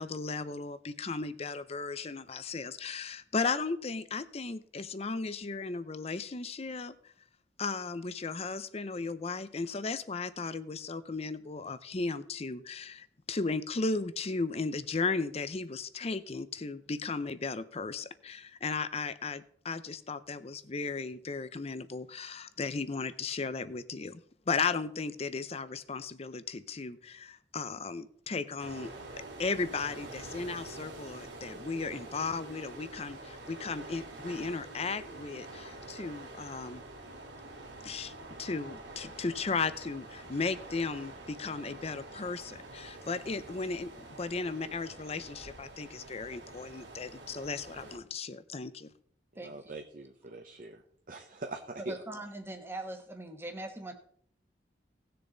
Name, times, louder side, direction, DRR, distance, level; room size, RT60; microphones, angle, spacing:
voice 1, 0.0-7.1 7.6-28.9 29.4-36.8 37.8-38.1 38.4-43.9 44.2-48.9, left 4 dB, 35° left, 14 dB, 0.6 m, -35 dB
sound 1, 28.6-48.0, right 2 dB, 90° right, 2.6 m, -47 dB
voice 2, 44.4-44.8 49.3-50.8 51.1-52.0, right 2 dB, 50° right, 3 dB, 0.9 m, -43 dB
voice 3, 51.8-53.9, right 2 dB, 15° right, 5 dB, 1.3 m, -41 dB
17.5 x 6.8 x 3.9 m, 0.63 s
head